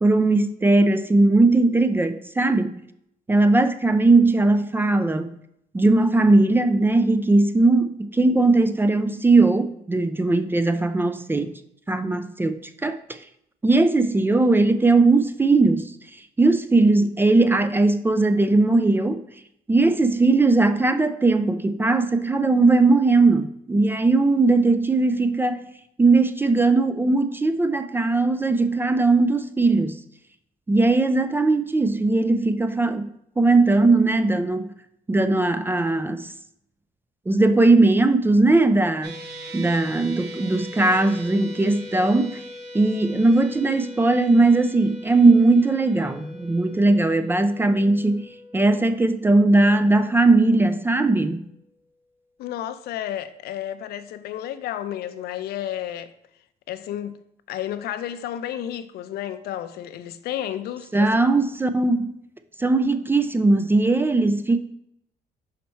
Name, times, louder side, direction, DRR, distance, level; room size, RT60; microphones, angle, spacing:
voice 1, 0.0-2.8 3.3-5.3 5.7-11.5 11.9-13.2 13.6-15.9 16.4-19.2 19.7-25.6 26.0-30.0 30.7-33.1 33.4-34.7 35.1-36.3 37.3-39.2 39.5-42.4 42.7-51.4 60.9-62.1 62.6-64.6, right 2 dB, 15° right, 0.4 m, -19 dB
sound 1, 39.0-51.4, equal, 85° right, 1.3 m, -41 dB
voice 2, 52.4-56.1 56.7-57.2 57.5-61.2, left 11 dB, 70° left, 0.5 m, -32 dB
5.7 x 4.3 x 4.2 m
cardioid pair, 110°, 17 cm